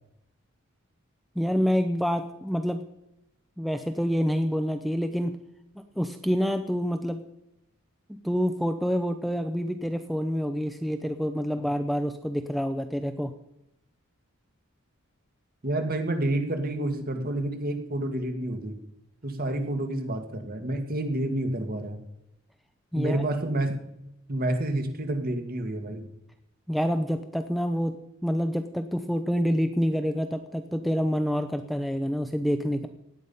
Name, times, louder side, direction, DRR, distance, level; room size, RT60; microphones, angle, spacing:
voice 1, 1.4-2.8 3.6-5.4 6.0-7.2 8.1-13.3 22.9-23.2 26.7-27.9 28.2-32.9, equal, ahead, 7 dB, 0.7 m, -27 dB
voice 2, 15.6-18.8 19.2-22.0 23.0-23.8 24.3-26.1, right 1 dB, 45° right, 6 dB, 1.9 m, -29 dB
17.0 x 10.5 x 5.5 m, 0.84 s
head